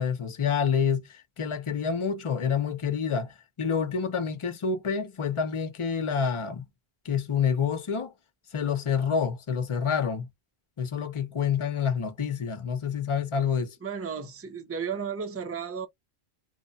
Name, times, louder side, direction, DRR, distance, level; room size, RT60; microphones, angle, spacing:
voice 1, 0.0-6.7 7.0-8.1 8.5-10.3 10.8-13.8, left 6 dB, 35° left, 0.5 m, -28 dB
voice 2, 13.8-15.9, right 6 dB, 20° right, 0.5 m, -34 dB
3.0 x 2.1 x 2.6 m
omnidirectional pair, 1.1 m